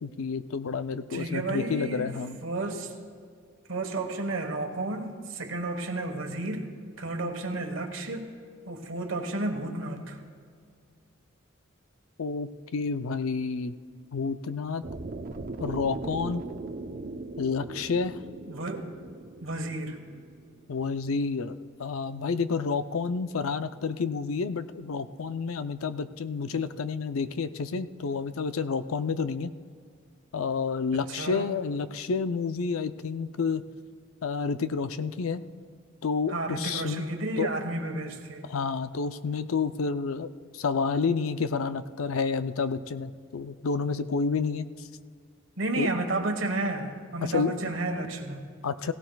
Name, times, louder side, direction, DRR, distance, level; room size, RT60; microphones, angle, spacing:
voice 1, 0.0-2.4 12.2-13.8 14.1-14.8 15.6-16.4 17.4-18.2 20.7-29.5 30.3-33.6 34.2-35.4 36.0-37.0 37.4-37.5 38.5-44.7 45.7-45.9 47.2-47.5 48.6-48.9, left 5 dB, 85° left, 11 dB, 0.5 m, -29 dB
voice 2, 1.1-2.1 2.4-2.9 3.7-6.7 7.0-8.3 8.7-10.2 18.5-18.9 19.4-20.0 30.9-31.5 36.3-38.5 45.6-48.5, right 2 dB, 70° right, 5 dB, 1.3 m, -32 dB
sound 1, 14.8-20.9, right 2 dB, 45° right, 0.6 m, -39 dB
17.0 x 17.0 x 2.3 m, 2.2 s
head